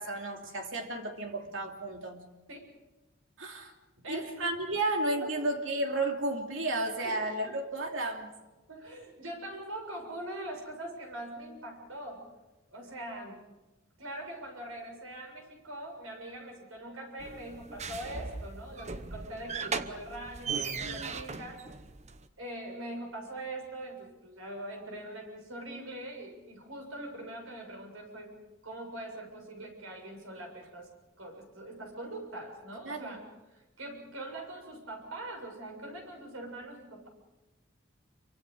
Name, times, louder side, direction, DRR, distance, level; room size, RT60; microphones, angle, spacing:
voice 1, 0.0-2.2 3.4-3.7 4.1-8.3 20.8-21.1 32.8-33.2, right 2 dB, 70° right, 3 dB, 2.9 m, -33 dB
voice 2, 8.7-12.2 12.7-13.4 14.0-21.7 22.4-28.3 28.6-30.9 31.2-33.3 33.8-37.1, right 1 dB, 85° right, 2 dB, 6.9 m, -42 dB
sound 1, 17.2-22.3, right 5 dB, 35° right, 0.9 m, -38 dB
27.5 x 24.5 x 5.0 m, 1.1 s
head